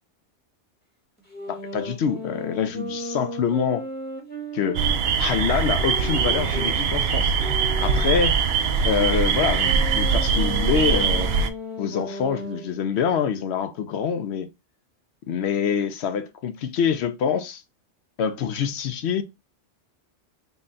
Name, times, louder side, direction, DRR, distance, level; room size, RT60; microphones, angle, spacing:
sound 1, 1.3-6.8 7.4-12.7, right 1 dB, 10° left, 1.1 m, -35 dB
voice 1, 1.5-3.9 4.5-4.8 5.2-7.4 7.8-8.4 8.8-11.3 11.8-14.5 15.3-17.6 18.2-19.2, left 7 dB, 70° left, 0.8 m, -25 dB
sound 2, 4.7-11.5, right 6 dB, 65° right, 0.8 m, -22 dB
3.9 x 2.3 x 3.8 m
omnidirectional pair, 1.2 m